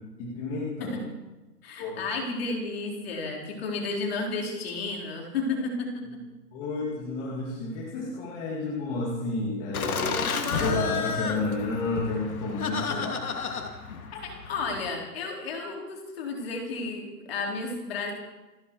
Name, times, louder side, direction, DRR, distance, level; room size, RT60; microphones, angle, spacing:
voice 1, 0.2-1.0 1.8-2.0 6.5-10.3 10.5-13.3, left 3 dB, 15° left, -3 dB, 2.1 m, -31 dB
voice 2, 1.6-6.2 14.1-18.1, left 3 dB, 35° left, 0 dB, 4.2 m, -32 dB
Laughter, 9.7-14.9, left 5 dB, 60° left, 2.7 m, -31 dB
29.0 x 10.5 x 4.8 m, 1.1 s
hypercardioid pair, 165°, 49 cm